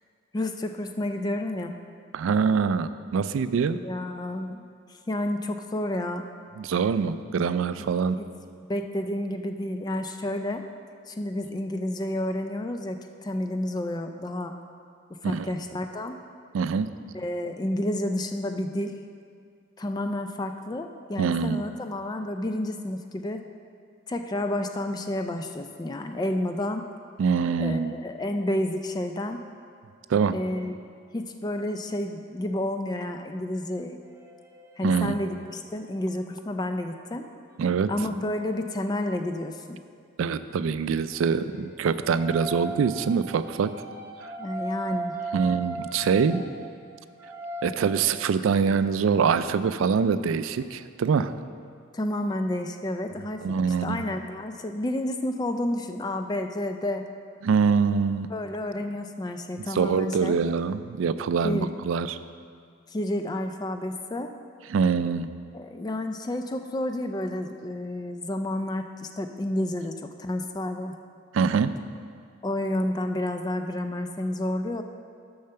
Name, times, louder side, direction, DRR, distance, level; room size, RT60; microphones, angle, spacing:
voice 1, 0.3-1.7 3.8-4.6 5.1-6.3 8.2-8.3 8.7-10.6 11.1-14.5 15.2-16.2 17.1-18.9 19.8-23.4 24.1-26.8 27.6-29.4 30.3-30.8 31.1-34.0 34.8-37.3 37.9-39.8 44.4-45.2 51.9-57.0 58.3-60.4 61.4-61.7 62.9-64.3 65.5-70.9 72.4-74.8, left 1 dB, 20° left, 6 dB, 0.3 m, -30 dB
voice 2, 2.1-3.8 6.6-8.2 15.2-15.5 16.5-16.9 21.2-21.6 27.2-28.0 30.1-30.4 34.8-35.1 37.6-37.9 40.2-43.7 45.3-46.4 47.6-51.3 53.4-54.0 57.4-58.3 59.7-62.2 64.7-65.3 71.3-71.7, right 6 dB, 80° right, 13 dB, 0.3 m, -24 dB
sound 1, 34.0-39.2 41.1-48.6, right 3 dB, 15° right, 1.1 m, -39 dB
6.9 x 5.6 x 6.6 m, 2.2 s
head